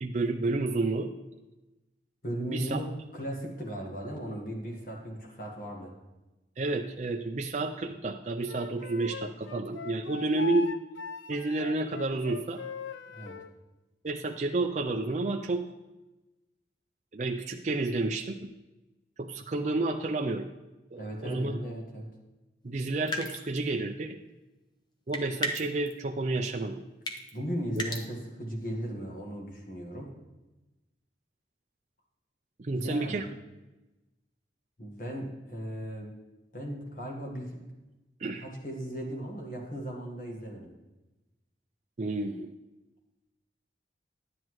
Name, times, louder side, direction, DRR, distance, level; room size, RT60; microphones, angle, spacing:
voice 1, 0.0-1.1 2.5-2.8 6.6-10.7 11.3-12.6 14.0-15.7 17.1-18.5 19.2-20.5 20.9-21.6 22.6-24.2 25.1-26.8 27.8-27.9 32.6-33.3 38.2-38.4 42.0-42.5, right 2 dB, 40° right, 4 dB, 0.4 m, -30 dB
voice 2, 2.2-2.9 3.1-5.9 13.1-13.3 21.0-22.1 27.3-30.1 32.7-33.2 34.8-36.1 36.5-37.6 38.4-40.7, equal, 45° left, 0 dB, 1.5 m, -36 dB
Wind instrument woodwind instrument, 8.4-13.5, left 4 dB, 90° left, 0.5 m, -40 dB
sound 1, 23.1-23.7 25.1-25.9 27.1-27.3 27.8-28.0, left 1 dB, 25° left, 0.7 m, -33 dB
10.5 x 9.4 x 3.1 m, 1.0 s
head